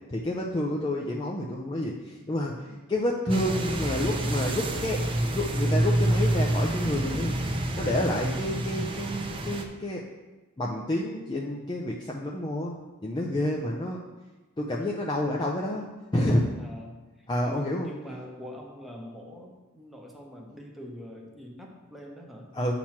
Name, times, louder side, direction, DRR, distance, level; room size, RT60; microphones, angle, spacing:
voice 1, 0.1-5.0 5.3-7.3 7.7-10.0 10.6-12.8 13.0-14.0 14.6-15.9 16.1-16.5 17.3-17.9 22.5-22.7, left 1 dB, 20° left, -2 dB, 0.5 m, -29 dB
sound 1, 3.3-9.6, right 1 dB, 25° right, 0.5 m, -28 dB
voice 2, 16.6-22.5, equal, ahead, -1 dB, 0.9 m, -44 dB
8.7 x 3.0 x 5.8 m, 1.2 s
head